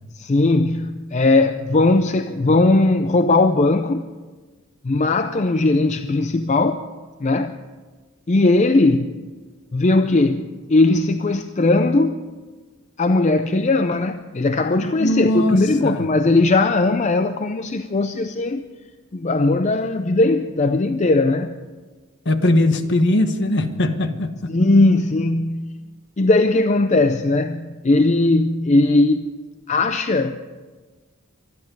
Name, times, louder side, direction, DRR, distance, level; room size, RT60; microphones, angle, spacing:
voice 1, 0.1-4.1 4.8-6.9 7.2-7.6 8.3-9.3 9.7-12.2 13.0-18.7 19.1-21.6 24.5-25.8 26.2-29.3 29.7-30.4, left 2 dB, 30° left, 0.5 m, -18 dB
voice 2, 15.0-16.1 22.2-24.5, left 1 dB, 55° left, 1.2 m, -20 dB
24.5 x 10.5 x 5.4 m
head